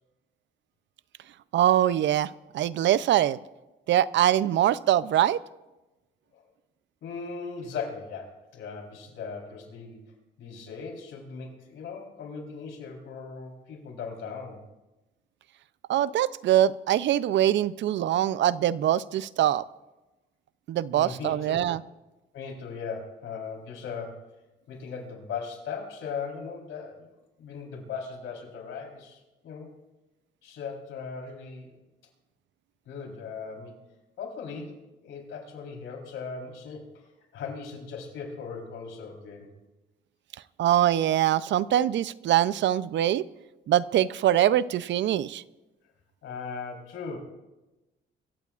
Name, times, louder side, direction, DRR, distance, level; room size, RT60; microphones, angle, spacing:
voice 1, 1.5-3.4 3.9-5.4 15.9-19.6 20.7-21.8 40.6-43.2 43.7-45.4, right 12 dB, 70° right, 17 dB, 0.5 m, -23 dB
voice 2, 7.0-10.0 10.4-14.6 20.9-21.7 22.3-24.3 24.7-27.1 27.4-29.7 30.4-31.7 32.9-33.8 34.2-37.1 37.3-39.5 46.2-47.2, left 5 dB, 80° left, 1 dB, 3.9 m, -38 dB
24.0 x 15.0 x 2.5 m, 1.0 s
cardioid pair, 90°, 20 cm